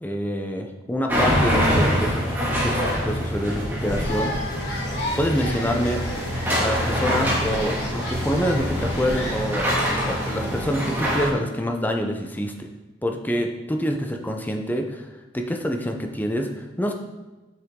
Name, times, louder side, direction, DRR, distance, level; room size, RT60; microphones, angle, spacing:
voice 1, 0.0-2.3 2.6-4.4 5.2-6.0 6.6-9.7 10.1-12.7 13.0-15.1 15.3-16.9, equal, 10° left, 3 dB, 0.7 m, -26 dB
sound 1, 1.1-11.3, equal, 10° right, 2.1 m, -25 dB
sound 2, 3.8-9.9, left 1 dB, 70° left, 1.8 m, -32 dB
7.4 x 6.7 x 3.8 m, 1.1 s
head